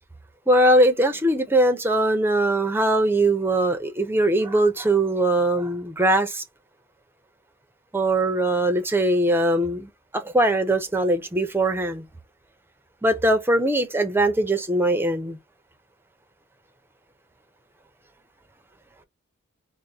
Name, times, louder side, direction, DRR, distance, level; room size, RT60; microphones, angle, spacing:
voice 1, 0.5-6.4 7.9-12.1 13.0-15.4, right 1 dB, 10° right, 0.6 m, -21 dB
3.5 x 2.1 x 4.0 m
head